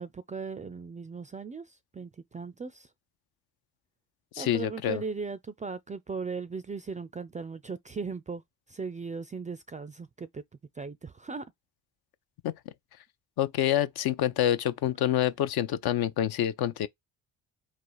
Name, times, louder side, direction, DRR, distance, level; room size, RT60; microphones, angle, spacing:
voice 1, 0.0-2.9 4.4-8.4 8.7-10.4 10.8-11.4, right 5 dB, 20° right, 0.3 m, -38 dB
voice 2, 4.3-5.0 12.4-12.5 13.4-16.9, left 11 dB, 60° left, 0.6 m, -27 dB
4.0 x 2.4 x 4.7 m
hypercardioid pair, 55°, 44 cm